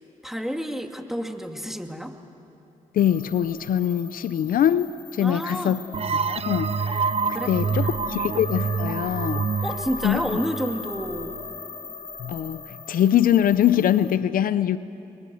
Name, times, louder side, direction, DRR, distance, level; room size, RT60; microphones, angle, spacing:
voice 1, 0.2-2.1 5.2-5.8 7.3-8.3 9.6-11.4, equal, ahead, 4 dB, 2.5 m, -30 dB
voice 2, 2.9-5.8 6.1-7.1 7.5-9.5 10.0-10.2 12.2-12.6 12.9-14.8, left 10 dB, 80° left, 15 dB, 0.7 m, -23 dB
sound 1, 3.0-14.2, left 5 dB, 60° left, 3.5 m, -38 dB
sound 2, 5.9-11.4, right 6 dB, 45° right, 0.5 m, -27 dB
29.5 x 23.5 x 7.9 m, 2.8 s
supercardioid pair, 50°, 14 cm